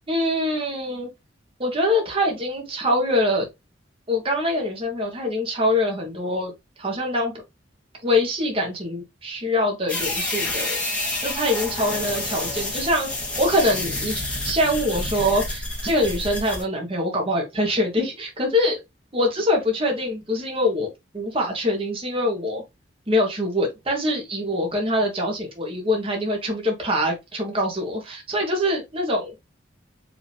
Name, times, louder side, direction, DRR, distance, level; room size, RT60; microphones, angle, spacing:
voice 1, 0.1-1.1 1.6-3.5 4.1-6.5 6.8-7.3 8.0-10.8 11.2-18.8 19.1-20.9 21.1-22.6 23.1-29.3, left 1 dB, 30° right, 1.4 m, -24 dB
sound 1, 9.9-16.6, left 2 dB, 5° left, 1.4 m, -29 dB
5.1 x 3.1 x 3.4 m
head